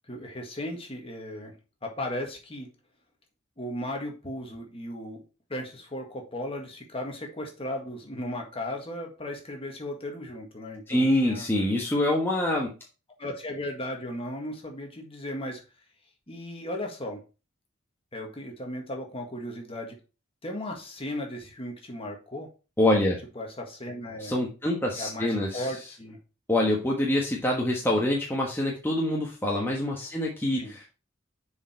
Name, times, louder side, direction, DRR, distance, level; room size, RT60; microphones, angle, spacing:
voice 1, 0.1-1.5 1.8-2.7 3.6-5.2 5.5-11.5 13.2-15.6 16.3-17.2 18.1-19.9 20.4-22.5 23.3-24.3 25.0-26.2 30.6-30.8, left 1 dB, 30° left, 2 dB, 1.7 m, -36 dB
voice 2, 10.9-12.7 22.8-23.2 24.2-25.6 26.5-30.9, left 1 dB, 10° left, -3 dB, 1.3 m, -25 dB
7.0 x 4.8 x 4.3 m, 0.32 s
head